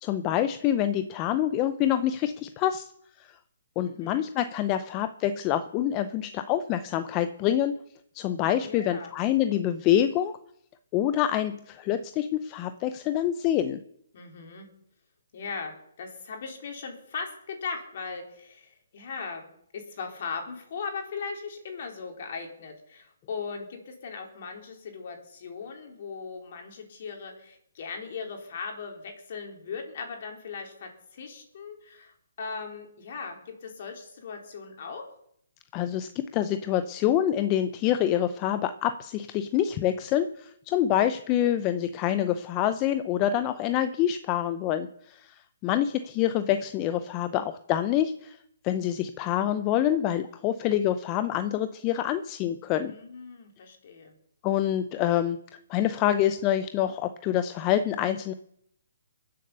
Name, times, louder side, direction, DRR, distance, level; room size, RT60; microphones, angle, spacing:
voice 1, 0.0-2.9 3.2-3.3 3.8-7.8 8.1-10.3 10.9-13.8 35.7-48.4 48.6-52.9 54.4-55.4 55.7-58.3, left 11 dB, 25° left, 11 dB, 0.6 m, -26 dB
voice 2, 3.8-4.3 8.6-9.1 14.1-14.7 15.3-15.7 16.0-35.0 52.9-54.1, left 5 dB, 50° left, 2 dB, 3.9 m, -38 dB
22.5 x 7.7 x 6.8 m, 0.71 s
hypercardioid pair, 150°, 0 cm